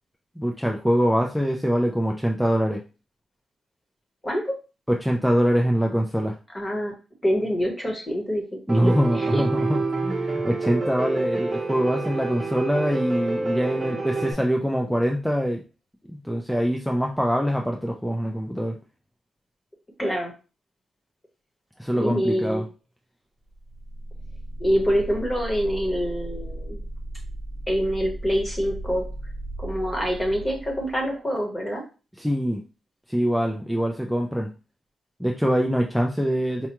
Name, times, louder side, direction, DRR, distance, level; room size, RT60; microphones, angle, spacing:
voice 1, 0.4-2.8 4.9-6.4 8.7-15.6 16.1-18.8 21.8-22.6 32.2-32.6 33.1-34.5 35.2-36.7, equal, ahead, 1 dB, 0.3 m, -24 dB
voice 2, 4.2-4.5 6.5-6.9 7.2-8.4 8.8-9.4 20.0-20.3 21.9-22.6 24.6-26.8 27.7-29.1 29.6-31.8, equal, 15° left, 1 dB, 1.0 m, -25 dB
Piano, 8.7-14.3, right 3 dB, 30° right, 0.8 m, -28 dB
sound 1, 23.5-31.2, right 1 dB, 80° left, 1.1 m, -36 dB
4.4 x 2.3 x 2.9 m, 0.32 s
wide cardioid pair, 160°, 0 cm